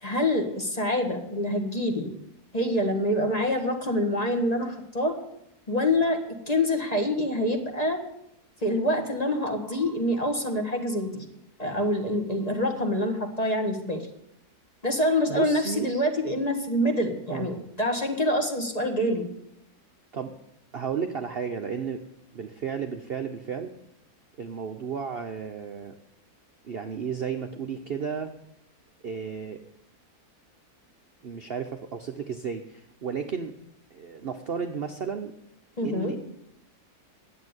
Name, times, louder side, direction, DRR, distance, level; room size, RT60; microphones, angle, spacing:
voice 1, 0.0-2.1 2.5-5.2 5.7-6.2 6.5-8.0 8.6-11.2 11.6-14.1 14.8-19.3 35.8-36.1, left 1 dB, 25° left, 3 dB, 1.5 m, -26 dB
voice 2, 15.3-15.9 17.3-17.5 20.1-20.3 20.7-22.0 22.3-23.7 24.4-25.9 26.6-28.3 29.0-29.6 31.2-33.5 33.9-35.3 35.8-36.2, right 6 dB, 50° right, 5 dB, 0.8 m, -33 dB
9.7 x 8.1 x 9.6 m, 0.79 s
omnidirectional pair, 1.7 m